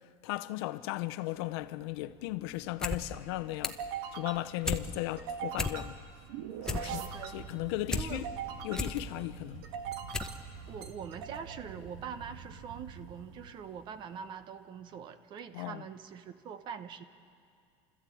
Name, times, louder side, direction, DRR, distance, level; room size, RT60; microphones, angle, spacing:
voice 1, 0.2-3.8 4.1-6.0 6.7-7.0 7.3-8.3 8.6-9.6 15.5-15.8, left 17 dB, 80° left, 0.8 m, -36 dB
sound 1, 1.4-14.1, right 7 dB, 80° right, 1.6 m, -43 dB
sound 2, 2.6-3.0 3.3-3.9 4.3-4.8 5.2-5.3 5.5-6.1 6.4-8.1 8.5-9.0 9.6-9.7 10.1-10.4 10.7-10.8, left 2 dB, 5° left, 0.8 m, -34 dB
voice 2, 6.9-7.4 7.9-8.3 10.7-17.0, right 7 dB, 35° right, 1.0 m, -43 dB
30.0 x 13.5 x 8.6 m
cardioid pair, 165°, 13 cm